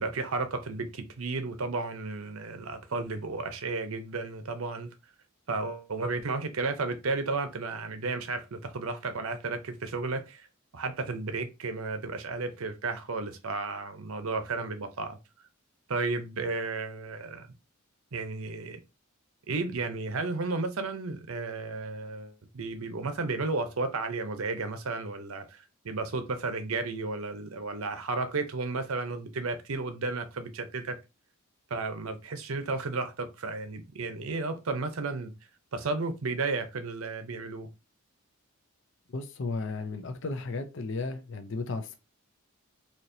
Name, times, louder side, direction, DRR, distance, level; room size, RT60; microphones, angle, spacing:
voice 1, 0.0-4.9 5.5-10.5 10.7-15.2 15.9-17.5 18.1-18.8 19.5-31.0 31.7-35.3 35.7-37.7, right 3 dB, 75° right, 0.7 m, -33 dB
voice 2, 39.1-42.0, left 3 dB, 55° left, 0.5 m, -34 dB
4.3 x 2.9 x 2.7 m
head